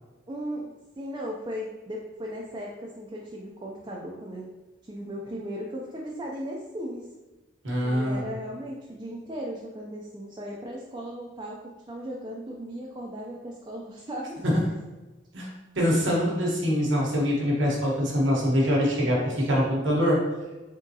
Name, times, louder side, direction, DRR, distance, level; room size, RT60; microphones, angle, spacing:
voice 1, 0.3-0.7 1.0-4.5 4.9-7.1 7.8-14.4, equal, 25° right, -3 dB, 0.4 m, -37 dB
voice 2, 7.6-8.2 14.4-14.5 15.3-15.5 15.8-20.2, equal, 80° right, -3 dB, 1.2 m, -24 dB
3.7 x 3.6 x 2.8 m, 1.2 s
head